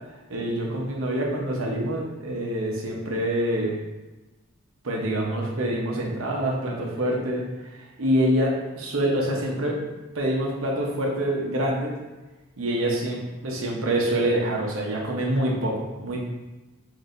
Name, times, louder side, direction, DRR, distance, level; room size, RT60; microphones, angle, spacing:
voice 1, 0.3-3.8 4.8-7.4 7.7-9.8 10.1-11.9 12.6-16.2, right 1 dB, 70° right, -2 dB, 0.9 m, -26 dB
6.1 x 2.7 x 2.5 m, 1.1 s
head